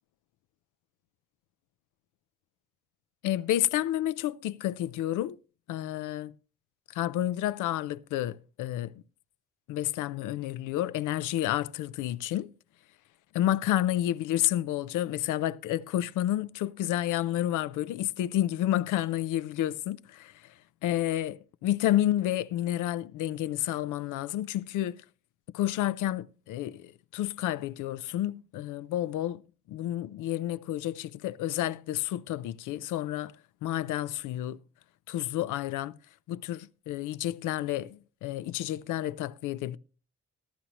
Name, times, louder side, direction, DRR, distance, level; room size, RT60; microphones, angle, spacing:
voice 1, 3.2-5.4 5.7-6.3 6.9-8.9 9.7-12.5 13.3-20.5 20.8-25.0 25.5-29.4 29.7-33.3 33.6-34.6 35.1-35.9 36.3-39.8, left 13 dB, 90° left, 0.6 m, -30 dB
14.0 x 12.5 x 2.9 m
cardioid pair, 90°, 30 cm